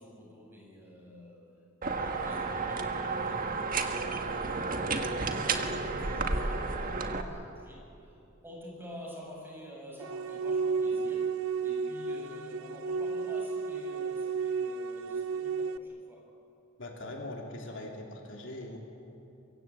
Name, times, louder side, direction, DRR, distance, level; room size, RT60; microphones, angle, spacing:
voice 1, 0.0-1.4 1.8-16.3, equal, 10° right, -2 dB, 7.1 m, -49 dB
sound 1, 1.8-7.2, right 3 dB, 45° right, 1.7 m, -32 dB
sound 2, 10.0-15.8, right 5 dB, 85° right, 0.6 m, -32 dB
voice 2, 16.8-18.8, left 1 dB, 65° left, 1 dB, 3.3 m, -41 dB
24.5 x 23.5 x 8.6 m, 2.8 s
head